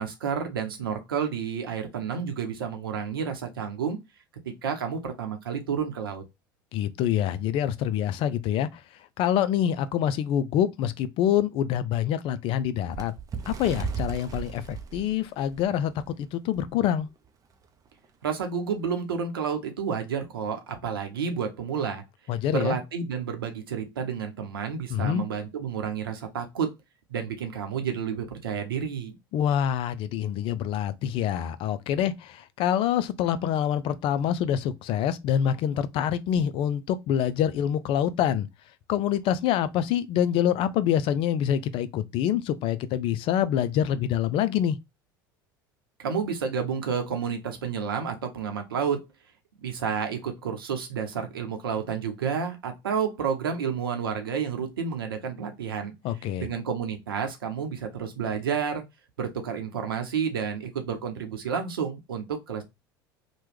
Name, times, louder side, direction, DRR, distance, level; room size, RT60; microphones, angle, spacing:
voice 1, 0.0-4.0 4.4-6.2 18.2-22.0 22.5-26.8 27.1-29.2 46.0-49.0 49.6-55.9 56.4-58.8 59.2-62.6, right 6 dB, 80° right, 0.8 m, -30 dB
voice 2, 6.7-8.8 9.2-13.1 13.5-17.1 22.3-22.8 24.9-25.2 29.3-38.5 38.9-44.8 56.0-56.5, left 10 dB, 50° left, 0.4 m, -26 dB
Bird, 12.9-16.1 16.6-16.7 17.0-17.3 18.0-18.1, right 7 dB, 30° right, 0.6 m, -36 dB
3.0 x 2.2 x 3.3 m
hypercardioid pair, 75°, 12 cm